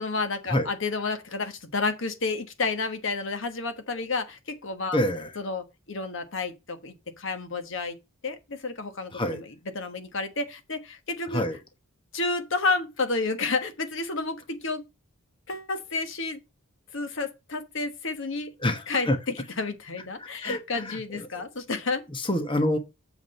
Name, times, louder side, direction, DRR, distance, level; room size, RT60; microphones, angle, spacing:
voice 1, 0.0-5.0 5.4-8.0 8.2-9.5 9.7-11.4 12.1-14.9 15.5-16.4 16.9-18.5 18.9-22.0, left 3 dB, 60° left, 1.2 m, -30 dB
voice 2, 4.9-5.3 9.1-9.4 11.3-11.6 18.6-19.2 20.2-21.4 22.1-22.8, left 1 dB, 25° left, 1.2 m, -27 dB
7.7 x 4.9 x 5.4 m
head